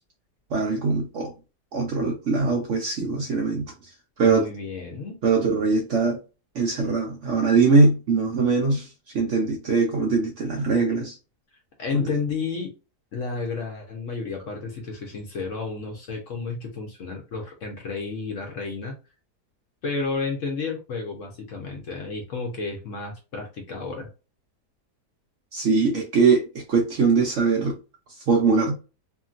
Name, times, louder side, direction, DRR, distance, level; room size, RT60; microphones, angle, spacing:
voice 1, 0.5-1.3 1.7-3.7 4.2-4.5 5.2-6.2 6.6-8.9 9.1-11.1 11.9-12.1 25.5-27.8 28.3-28.8, right 4 dB, 65° right, 0.8 m, -21 dB
voice 2, 4.2-5.2 11.8-12.7 13.1-18.9 19.8-24.1, left 4 dB, 60° left, 0.9 m, -31 dB
2.8 x 2.7 x 2.4 m
omnidirectional pair, 1.8 m